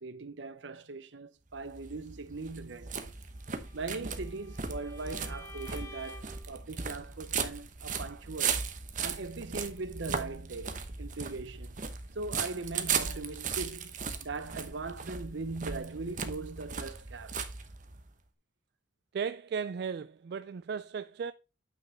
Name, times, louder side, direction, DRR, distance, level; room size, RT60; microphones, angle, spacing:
voice 1, 0.0-3.1 3.7-8.7 9.0-11.7 12.1-13.9 14.2-17.4, right 3 dB, 75° right, 0.8 m, -40 dB
sound 1, 1.6-18.1, right 6 dB, 45° right, 1.0 m, -37 dB
Bowed string instrument, 3.4-6.5, left 1 dB, 15° left, 1.6 m, -51 dB
voice 2, 19.1-21.3, right 6 dB, 60° right, 0.3 m, -36 dB
8.9 x 5.5 x 3.4 m
head